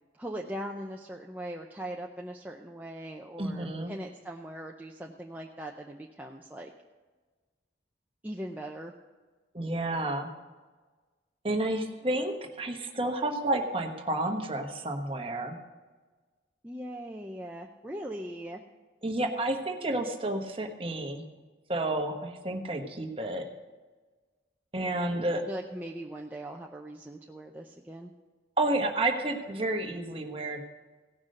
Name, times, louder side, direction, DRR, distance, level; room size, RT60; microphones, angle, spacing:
voice 1, 0.1-6.7 8.2-8.9 16.6-18.6 25.5-28.1, right 1 dB, 10° right, 0 dB, 0.6 m, -40 dB
voice 2, 3.4-3.9 9.5-10.3 11.4-15.6 19.0-21.2 21.7-23.4 24.7-25.4 28.6-30.6, right 2 dB, 30° right, 3 dB, 1.2 m, -30 dB
17.0 x 6.1 x 6.5 m, 1.3 s
head